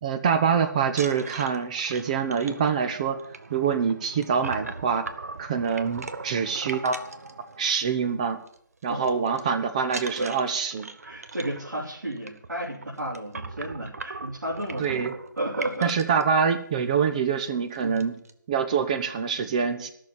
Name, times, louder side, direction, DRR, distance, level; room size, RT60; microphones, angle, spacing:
voice 1, 0.0-3.2 3.5-5.1 5.4-6.9 7.6-8.4 8.8-10.9 14.8-15.1 15.8-18.1 18.5-19.9, right 6 dB, 20° right, 8 dB, 0.8 m, -25 dB
sound 1, 0.9-8.0 8.3-8.6 8.8-9.4 9.8-16.2 16.9-17.0 17.3-17.5 17.7-18.3, right 3 dB, 50° right, 1.0 m, -40 dB
voice 2, 11.0-15.1 15.4-16.0 17.8-18.2, right 1 dB, 70° right, -6 dB, 3.2 m, -33 dB
13.0 x 6.7 x 8.8 m, 0.67 s
figure-of-eight pair, 150°, 11 cm